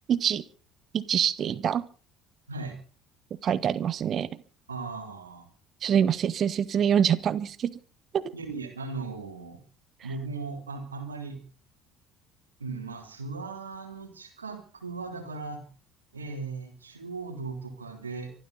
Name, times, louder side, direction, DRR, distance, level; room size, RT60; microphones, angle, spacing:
voice 1, 0.1-0.4 0.9-1.8 3.4-4.3 5.8-7.7 8.1-8.2, right 8 dB, 40° right, 18 dB, 1.2 m, -25 dB
voice 2, 2.5-2.8 4.7-5.5 8.3-9.6 10.0-11.4 12.6-15.6 16.1-18.3, right 4 dB, 80° right, 6 dB, 3.3 m, -37 dB
24.5 x 13.5 x 4.1 m, 0.38 s
figure-of-eight pair, 60°, 0 cm